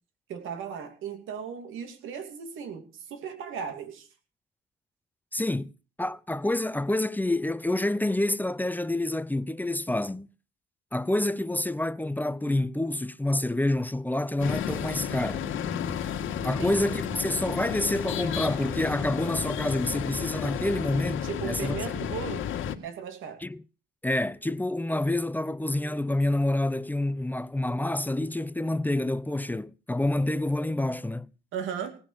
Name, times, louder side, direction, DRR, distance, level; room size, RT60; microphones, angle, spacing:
voice 1, 0.3-4.1 16.4-16.8 21.2-22.5 22.8-23.4 31.5-31.9, right 7 dB, 85° right, 2.6 m, -36 dB
voice 2, 5.3-5.7 6.0-10.3 10.9-15.4 16.4-21.8 23.4-23.6 24.0-31.3, left 1 dB, 10° left, 0.6 m, -28 dB
sound 1, 14.4-22.7, left 8 dB, 80° left, 2.0 m, -32 dB
18.5 x 7.1 x 8.2 m
cardioid pair, 90°, 20 cm